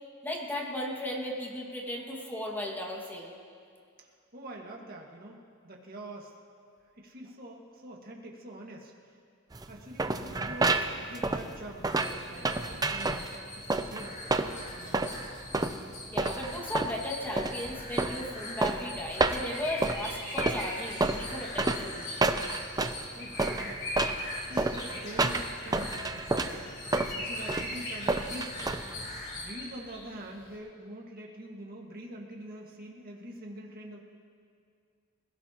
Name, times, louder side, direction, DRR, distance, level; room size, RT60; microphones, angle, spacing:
voice 1, 0.2-3.4 16.1-22.2, left 1 dB, 10° left, -1 dB, 1.9 m, -36 dB
voice 2, 4.0-6.3 7.0-9.2 9.7-15.1 23.1-23.9 24.5-26.7 27.1-28.8 29.3-34.0, right 1 dB, 45° right, -1 dB, 1.8 m, -45 dB
sound 1, 9.5-29.2, right 2 dB, 20° right, 0.6 m, -30 dB
sound 2, 11.9-29.5, left 1 dB, 40° left, 3.8 m, -43 dB
sound 3, 19.0-30.6, left 2 dB, 60° left, 4.6 m, -41 dB
27.0 x 16.5 x 3.0 m, 2.2 s
head